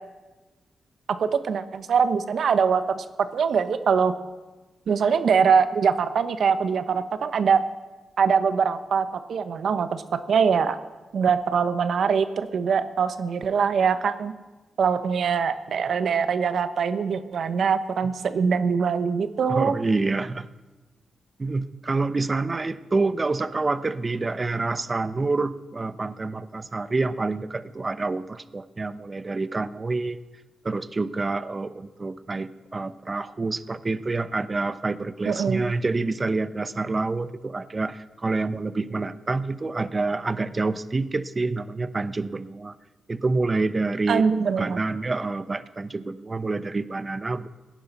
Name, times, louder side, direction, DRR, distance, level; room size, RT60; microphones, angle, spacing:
voice 1, 1.2-3.0 3.3-4.1 4.9-7.6 8.2-10.0 10.3-10.8 11.1-14.3 14.8-19.7 35.3-35.6 44.1-44.8, right 6 dB, 70° right, 11 dB, 1.0 m, -23 dB
voice 2, 19.5-20.5 21.4-30.2 30.6-42.8 43.1-44.2 44.5-47.5, right 3 dB, 35° right, 13 dB, 0.8 m, -27 dB
17.5 x 10.5 x 5.3 m, 1.2 s
cardioid pair, 55°, 0 cm